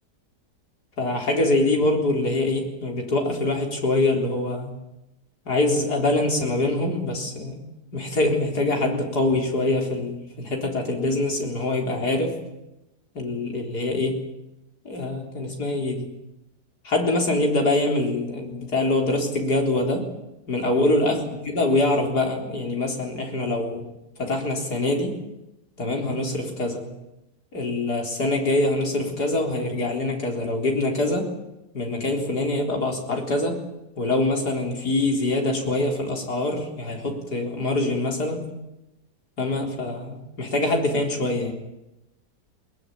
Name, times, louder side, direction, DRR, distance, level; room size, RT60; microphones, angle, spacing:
voice 1, 1.0-4.7 5.5-7.7 7.9-12.4 13.1-14.2 14.8-16.1 16.8-20.1 20.5-23.8 24.2-25.2 25.8-26.8 27.5-31.3 31.7-33.6 34.0-38.5 39.4-41.5, left 2 dB, 70° left, 1 dB, 4.5 m, -24 dB
21.5 x 19.5 x 9.3 m, 0.94 s
omnidirectional pair, 1.8 m